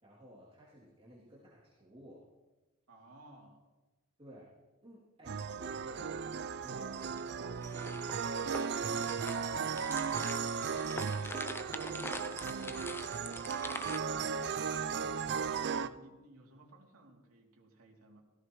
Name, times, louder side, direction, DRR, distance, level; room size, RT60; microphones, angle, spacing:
voice 1, 0.0-2.2 4.2-4.5 4.8-7.6 11.9-14.3, equal, 25° right, -7 dB, 2.8 m, -55 dB
voice 2, 2.9-3.6 10.5-10.9 15.1-18.2, right 1 dB, 80° right, -1 dB, 2.9 m, -58 dB
sound 1, 5.2-15.9, right 6 dB, 50° right, 0.5 m, -36 dB
sound 2, 7.0-14.0, left 2 dB, 10° left, 0.6 m, -45 dB
17.0 x 16.5 x 3.1 m, 1.2 s
head